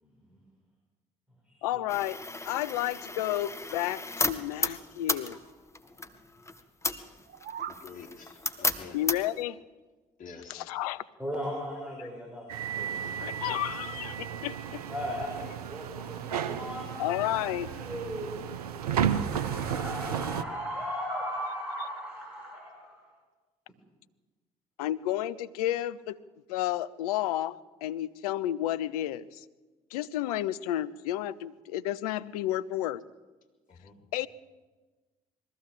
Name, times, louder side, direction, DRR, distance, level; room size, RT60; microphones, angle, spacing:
voice 1, 0.0-0.4 1.5-1.7 5.8-6.0 11.2-13.2 14.9-23.1, equal, 5° right, -1 dB, 6.2 m, -38 dB
voice 2, 1.6-2.2 2.5-5.4 8.9-9.6 10.5-11.0 12.0-12.1 13.2-14.8 17.0-17.7 24.8-26.2 26.5-29.4 29.9-33.0 34.1-34.3, left 13 dB, 80° left, 15 dB, 0.6 m, -31 dB
sound 1, 1.9-9.4, left 2 dB, 15° left, 1.8 m, -34 dB
sound 2, 7.1-7.9, right 9 dB, 60° right, 1.2 m, -40 dB
voice 3, 7.7-9.0 10.2-10.7 33.7-34.0, left 5 dB, 45° left, 0 dB, 3.7 m, -48 dB
sound 3, 12.5-20.4, right 8 dB, 85° right, 0.8 m, -33 dB
22.0 x 15.0 x 7.8 m, 1.2 s
hypercardioid pair, 50°, 19 cm